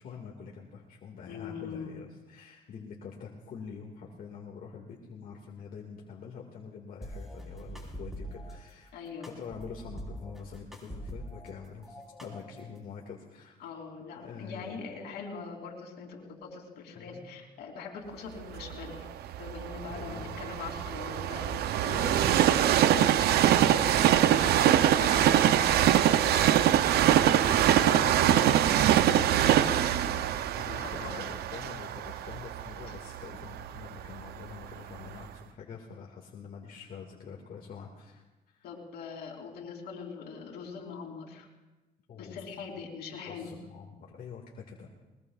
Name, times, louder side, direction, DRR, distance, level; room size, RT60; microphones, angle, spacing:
voice 1, 0.0-9.1 9.4-13.6 14.2-14.8 16.9-17.3 19.9-20.5 21.9-22.3 23.6-23.9 27.4-27.8 30.6-38.7 42.1-42.4 43.3-44.9, left 6 dB, 60° left, -2 dB, 2.0 m, -45 dB
voice 2, 1.3-2.0 8.9-9.3 13.6-19.1 19.4-26.8 27.1-30.3 30.6-31.2 38.6-41.5 42.1-43.5, left 5 dB, 85° left, 0 dB, 3.0 m, -42 dB
sound 1, 7.0-8.6 9.2-11.5 11.8-12.8, equal, ahead, 4.2 m, -43 dB
Train, 18.6-34.5 35.1-35.2, right 11 dB, 80° right, 0.6 m, -24 dB
21.5 x 20.5 x 2.4 m, 1.1 s
cardioid pair, 95°, 16 cm